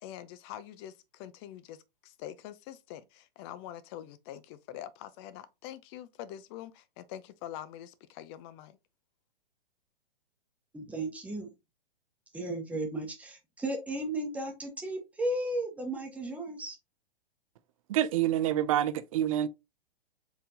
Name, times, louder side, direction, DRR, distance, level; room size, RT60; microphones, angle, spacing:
voice 1, 0.0-8.8, left 11 dB, 25° left, 0.5 m, -45 dB
voice 2, 10.7-11.5 12.3-16.8, right 1 dB, 5° right, 1.1 m, -34 dB
voice 3, 17.9-19.5, right 11 dB, 35° right, 0.4 m, -27 dB
4.4 x 3.7 x 2.7 m
hypercardioid pair, 130°, 30 cm